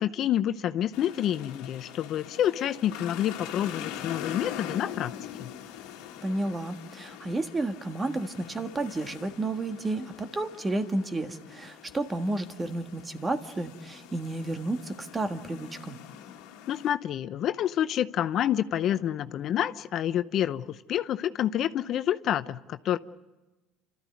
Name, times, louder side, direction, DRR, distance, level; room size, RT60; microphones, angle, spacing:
voice 1, 0.0-5.1 5.4-5.5 16.7-23.0, left 11 dB, 55° left, 13 dB, 0.7 m, -28 dB
sound 1, 0.9-16.9, left 10 dB, 75° left, 1.7 m, -43 dB
voice 2, 6.2-16.0, right 2 dB, 20° right, 8 dB, 1.6 m, -31 dB
28.5 x 13.5 x 9.4 m, 1.1 s
supercardioid pair, 80°, 0 cm